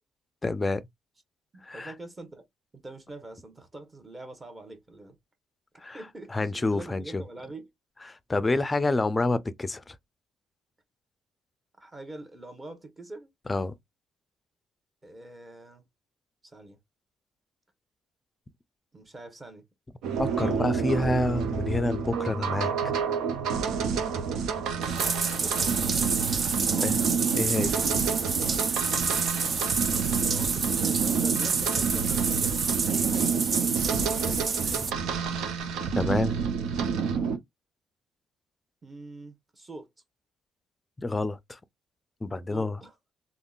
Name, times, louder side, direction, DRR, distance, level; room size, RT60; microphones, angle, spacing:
voice 1, 0.4-0.8 1.6-1.9 5.8-6.0 6.3-7.2 8.1-10.0 13.5-13.7 20.2-22.9 26.8-27.0 27.4-27.8 36.0-36.4 41.0-41.6 42.2-42.8, left 2 dB, 20° left, 0.4 m, -28 dB
voice 2, 1.5-2.5 2.8-5.2 5.9-7.7 11.8-13.3 15.0-15.8 16.4-16.8 18.9-19.7 20.3-21.1 25.2-26.0 26.6-27.0 28.4-28.7 30.2-34.4 38.8-39.9 42.3-42.9, right 2 dB, 25° right, 0.9 m, -44 dB
sound 1, 20.0-37.4, right 6 dB, 85° right, 0.6 m, -29 dB
Bathtub (filling or washing), 24.8-34.9, right 5 dB, 45° right, 0.5 m, -28 dB
3.6 x 2.1 x 2.3 m
cardioid pair, 90°, 0 cm